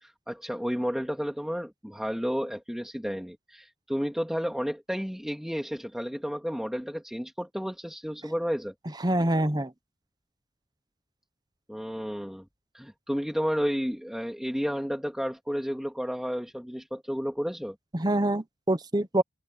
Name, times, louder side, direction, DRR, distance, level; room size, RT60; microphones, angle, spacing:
voice 1, 0.0-8.7 11.7-12.4 12.7-17.8, equal, ahead, 2.2 m, -32 dB
voice 2, 9.0-9.7 17.9-19.2, right 1 dB, 20° right, 1.0 m, -25 dB
open air
head